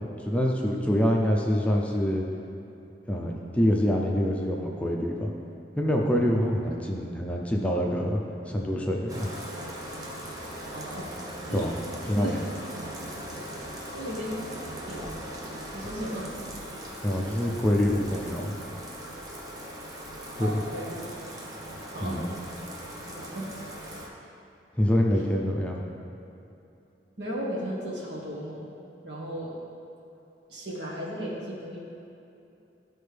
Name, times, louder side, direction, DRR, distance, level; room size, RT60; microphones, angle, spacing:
voice 1, 0.0-2.2 3.1-5.3 5.8-9.3 11.5-11.7 12.0-12.4 17.0-18.5 20.4-20.6 22.0-22.2 24.8-25.8, equal, 5° left, -1 dB, 0.5 m, -26 dB
Bathtub (filling or washing), 9.1-24.1, equal, 20° right, 0.8 m, -39 dB
voice 2, 10.7-11.1 11.5-11.6 12.1-12.4 12.7-12.8 13.6-13.7 13.9-14.4 14.9-15.1 15.7-16.3 20.4-21.0 21.9-22.2 23.1-23.5 27.2-28.7 29.0-29.6 30.5-31.8, equal, 75° right, -5 dB, 1.7 m, -35 dB
12.5 x 4.4 x 3.4 m, 2.7 s
head